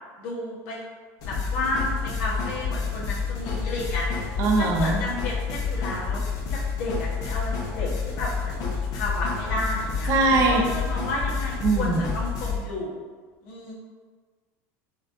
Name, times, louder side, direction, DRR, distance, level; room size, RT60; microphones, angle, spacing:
voice 1, 0.2-0.8 1.2-6.2 6.5-10.1 10.5-13.1 13.4-13.7, left 2 dB, 70° left, -5 dB, 1.1 m, -32 dB
sound 1, 1.2-12.6, left 5 dB, 50° left, 0.8 m, -29 dB
voice 2, 4.4-5.0 10.1-10.7 11.6-12.1, right 3 dB, 45° right, 1 dB, 0.6 m, -21 dB
4.3 x 2.5 x 2.6 m, 1.5 s
supercardioid pair, 135°, 8 cm